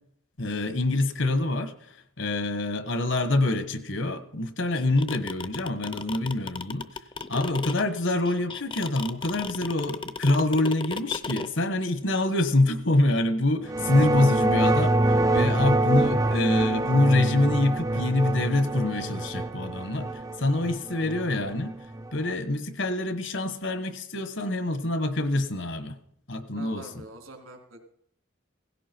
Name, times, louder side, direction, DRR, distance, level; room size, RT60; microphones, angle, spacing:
voice 1, 0.4-6.9 7.3-21.8 22.1-26.0 26.3-27.0, left 2 dB, 65° left, 1.4 m, -26 dB
sound 1, 4.8-11.5, left 4 dB, 25° left, 0.6 m, -34 dB
sound 2, 13.6-22.3, right 2 dB, 15° right, 0.5 m, -26 dB
voice 2, 26.5-27.8, right 2 dB, 80° right, 3.5 m, -44 dB
17.5 x 16.0 x 4.6 m
head